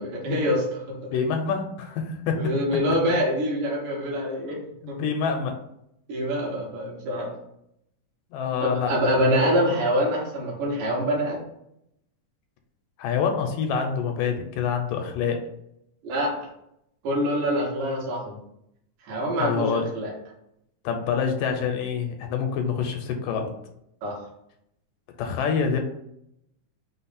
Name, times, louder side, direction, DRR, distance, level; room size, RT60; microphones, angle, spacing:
voice 1, 0.0-1.0 2.4-4.6 4.9-5.0 6.1-7.3 8.6-11.4 16.0-16.3 17.0-18.4 19.1-20.1 24.0-24.2, equal, 70° right, -3 dB, 2.6 m, -25 dB
voice 2, 1.1-2.4 4.8-5.6 8.3-8.9 13.0-15.4 19.4-19.9 20.9-23.5 25.2-25.8, left 6 dB, 80° left, 4 dB, 2.1 m, -26 dB
5.8 x 2.0 x 4.1 m, 0.78 s
omnidirectional pair, 3.9 m